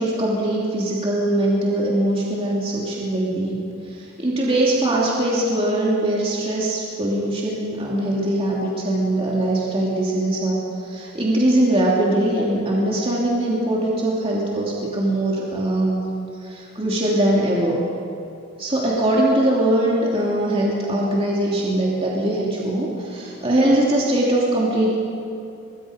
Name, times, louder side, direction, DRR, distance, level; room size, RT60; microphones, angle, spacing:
voice 1, 0.0-16.1 16.4-17.8 18.6-24.9, right 1 dB, 25° right, -5 dB, 2.9 m, -21 dB
25.5 x 20.5 x 5.2 m, 2.6 s
head